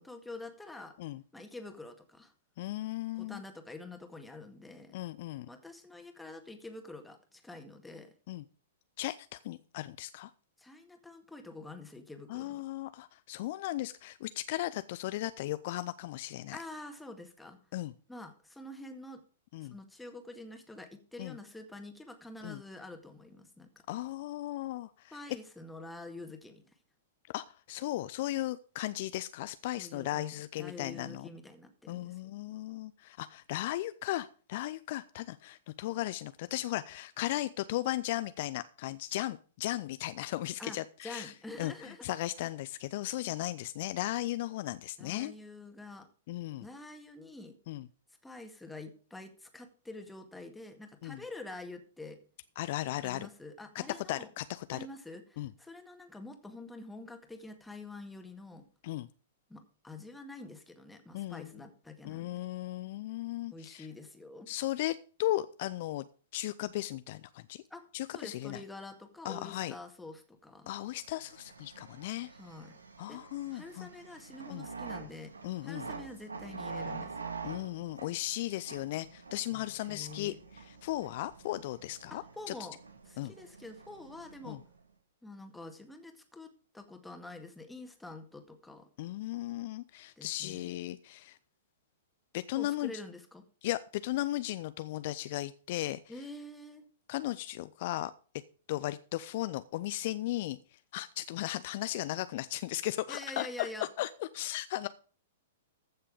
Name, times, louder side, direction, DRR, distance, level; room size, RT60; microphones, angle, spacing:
voice 1, 0.0-0.9 1.3-2.3 3.1-5.0 5.5-8.1 10.6-12.6 16.5-17.6 18.1-19.2 19.6-23.7 25.1-26.6 29.8-32.3 40.6-42.1 45.0-46.1 46.6-47.6 48.2-52.2 53.0-54.3 54.7-58.7 59.5-62.4 63.5-64.5 67.7-67.8 68.1-70.7 72.3-72.8 73.1-73.2 73.5-75.3 75.6-77.3 79.5-80.4 82.1-82.8 83.0-84.6 85.2-86.5 86.7-88.9 90.2-90.7 92.5-93.4 96.1-96.8 103.1-103.9, left 2 dB, 5° left, 6 dB, 1.9 m, -47 dB
voice 2, 2.6-3.4 4.9-5.5 8.3-8.4 9.0-10.3 12.3-16.6 17.7-17.9 19.5-19.7 21.2-21.4 22.4-22.6 23.9-25.2 27.3-31.3 31.9-41.3 41.6-41.7 42.0-45.3 46.3-46.7 47.7-47.9 51.0-51.2 52.6-53.3 53.7-53.8 54.1-54.8 55.4-55.5 58.8-59.1 61.1-61.5 62.0-63.9 64.5-66.0 66.3-67.6 67.9-68.6 69.2-69.7 70.7-72.3 73.0-73.9 74.5-74.6 75.4-75.9 77.4-80.3 80.7-82.5 83.2-83.3 84.5-84.6 89.0-91.4 92.3-92.9 93.6-96.0 97.1-98.1 98.7-103.7 104.0-104.9, left 16 dB, 50° left, 14 dB, 0.5 m, -36 dB
sound 1, 70.9-84.8, right 4 dB, 80° right, 2.6 m, -46 dB
14.5 x 6.7 x 5.1 m, 0.40 s
figure-of-eight pair, 105°, 0 cm